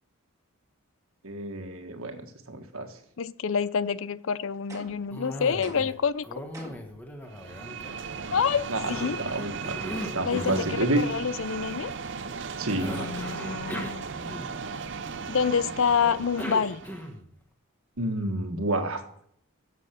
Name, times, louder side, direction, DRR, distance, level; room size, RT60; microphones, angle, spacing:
voice 1, 1.2-2.9 8.7-11.0 12.6-13.0 18.0-19.0, right 2 dB, 75° right, 5 dB, 1.6 m, -30 dB
voice 2, 3.2-6.7 8.3-9.2 10.2-11.9 12.9-14.1 15.3-16.8, left 6 dB, 65° left, 17 dB, 0.5 m, -27 dB
sound 1, 4.7-5.1 5.6-6.1 6.5-7.0, right 2 dB, 15° right, 1.7 m, -45 dB
Cough, 5.1-6.0 6.2-8.3 8.8-10.8 12.8-14.8 16.0-17.3, equal, 10° left, 1.1 m, -38 dB
sound 2, 7.3-17.1, right 5 dB, 55° right, 0.6 m, -36 dB
10.5 x 7.6 x 6.7 m, 0.68 s
head